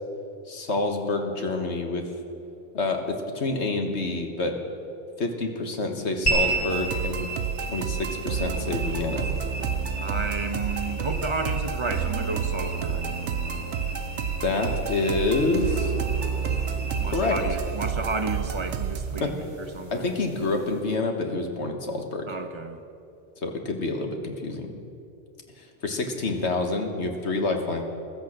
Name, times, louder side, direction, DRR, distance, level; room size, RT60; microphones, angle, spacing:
voice 1, 0.5-2.1 2.7-4.6 5.2-7.3 7.6-9.3 14.4-15.9 17.1-17.4 19.2-19.3 19.9-22.3 23.4-24.7 25.6-27.8, left 3 dB, 70° left, 4 dB, 1.7 m, -27 dB
sound 1, 6.3-20.9, right 2 dB, 25° left, 2.4 m, -34 dB
sound 2, 6.7-19.2, right 7 dB, 80° right, 1.0 m, -30 dB
voice 2, 10.0-13.1 17.0-20.2 22.3-22.8, right 3 dB, 30° right, 6 dB, 0.8 m, -32 dB
14.5 x 13.5 x 6.5 m, 2.6 s
omnidirectional pair, 1.2 m